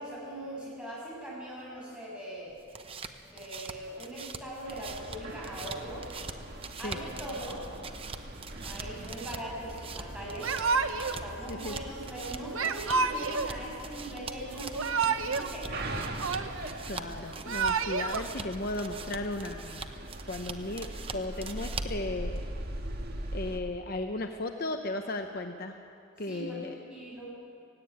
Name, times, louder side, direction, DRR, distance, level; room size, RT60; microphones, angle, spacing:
voice 1, 0.0-2.5 3.3-6.0 6.8-7.6 8.6-10.5 10.9-15.7 26.2-27.3, right 1 dB, 5° right, -5 dB, 7.3 m, -41 dB
sound 1, 2.5-22.1, right 5 dB, 25° right, 0.9 m, -44 dB
sound 2, 4.6-23.6, right 1 dB, 50° right, 1.8 m, -41 dB
Yell / Crying sobbing, 10.4-11.2 12.5-13.5 14.6-15.5 15.8-16.8 17.3-18.2, right 5 dB, 80° right, 1.0 m, -29 dB
voice 2, 16.9-19.9 20.3-22.4 23.3-25.7 26.2-26.8, left 2 dB, 45° left, 5 dB, 0.9 m, -35 dB
17.5 x 16.5 x 9.9 m, 2.5 s
head